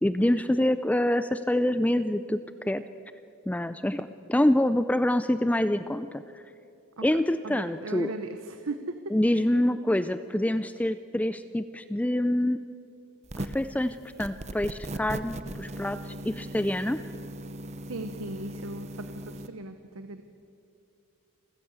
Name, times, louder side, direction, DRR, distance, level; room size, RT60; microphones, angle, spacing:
voice 1, 0.0-2.8 3.5-6.4 7.0-8.1 9.1-12.6 13.4-17.0, left 1 dB, 5° left, 12 dB, 0.4 m, -26 dB
voice 2, 7.4-9.1 17.9-20.2, right 2 dB, 70° right, 8 dB, 1.0 m, -38 dB
sound 1, 13.2-13.7 14.2-19.5, right 1 dB, 30° right, 0.9 m, -38 dB
28.5 x 14.0 x 8.1 m, 2.6 s
head